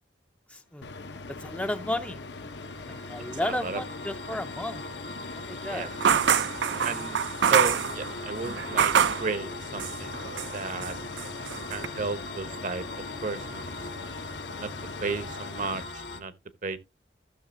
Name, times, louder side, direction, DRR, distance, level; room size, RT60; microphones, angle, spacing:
voice 1, 0.5-0.9 1.3-2.2 2.9-4.8 5.3-5.9, left 1 dB, 10° left, 0.5 m, -33 dB
sound 1, 0.8-15.8, left 3 dB, 70° left, 0.8 m, -41 dB
sound 2, 1.1-16.2, left 3 dB, 85° left, 1.4 m, -41 dB
sound 3, 6.0-9.3 9.8-10.6 10.8-11.9, right 7 dB, 75° right, 0.5 m, -25 dB
voice 2, 6.8-8.9 9.2-10.2 10.5-11.0 11.7-13.9 14.5-14.7 15.0-16.3 16.6-16.8, right 4 dB, 45° right, 0.8 m, -33 dB
15.0 x 6.5 x 2.6 m
head